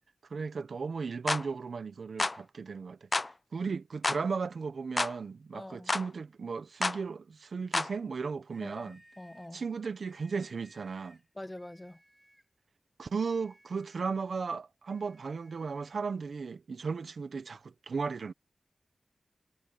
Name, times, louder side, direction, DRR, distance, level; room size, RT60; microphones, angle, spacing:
voice 1, 0.3-9.0 9.5-11.2 13.0-18.3, right 5 dB, 80° right, 1.2 m, -36 dB
sound 1, 1.3-1.5 2.2-2.4 3.1-3.3 4.0-4.2 5.0-5.2 5.9-6.1 6.8-7.0 7.7-7.9, left 2 dB, 40° left, 0.7 m, -29 dB
voice 2, 5.5-5.9 8.6-9.6 11.4-12.0, left 1 dB, 20° left, 1.4 m, -45 dB
sound 2, 8.5-9.6 10.0-11.3 11.5-12.5 13.1-14.3 14.9-16.2, equal, 10° right, 4.5 m, -62 dB
cardioid pair, 40°, 0 cm